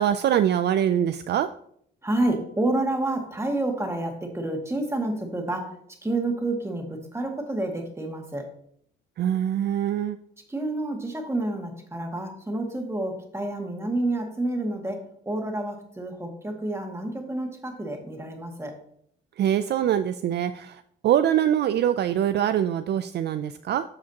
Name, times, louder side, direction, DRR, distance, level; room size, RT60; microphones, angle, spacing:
voice 1, 0.0-1.5 9.2-10.2 19.4-23.8, right 10 dB, 60° right, 11 dB, 0.4 m, -24 dB
voice 2, 2.0-5.7 6.0-8.5 10.5-18.8, right 2 dB, 15° right, 2 dB, 1.9 m, -29 dB
13.0 x 4.9 x 2.9 m, 0.67 s
cardioid pair, 90°, 20 cm